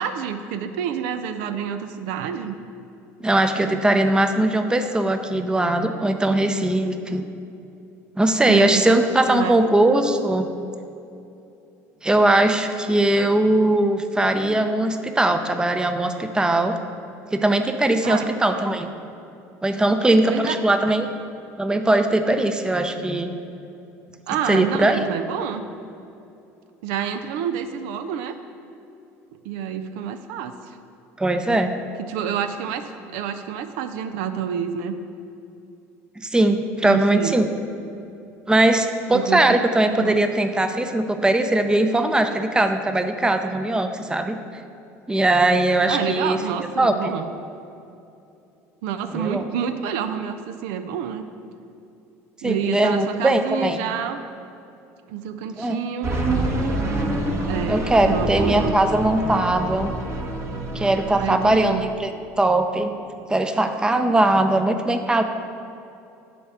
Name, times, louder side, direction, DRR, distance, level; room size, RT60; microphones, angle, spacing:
voice 1, 0.0-2.6 8.4-9.0 9.3-9.6 18.0-18.7 20.3-20.5 20.9-21.0 24.3-25.6 26.8-28.4 29.4-30.8 32.0-32.8 33.1-34.9 36.8-37.3 39.1-39.5 39.9-40.2 45.8-47.3 48.8-51.2 52.4-54.2 55.1-56.1 57.5-58.8 61.2-61.9, right 8 dB, 75° right, 9 dB, 0.5 m, -28 dB
voice 2, 3.2-7.2 8.2-10.5 12.0-16.8 17.3-18.9 19.6-21.1 21.6-23.3 24.5-25.0 31.2-31.7 36.2-37.5 38.5-44.4 45.1-46.4 46.8-47.1 49.1-49.4 52.4-53.8 55.6-55.8 57.7-59.9 60.7-62.1 62.4-62.9 63.3-65.2, right 1 dB, 10° right, 7 dB, 0.6 m, -20 dB
sound 1, 56.0-61.6, right 2 dB, 40° right, 1.2 m, -26 dB
8.3 x 4.3 x 6.0 m, 2.7 s
hypercardioid pair, 80°, 8 cm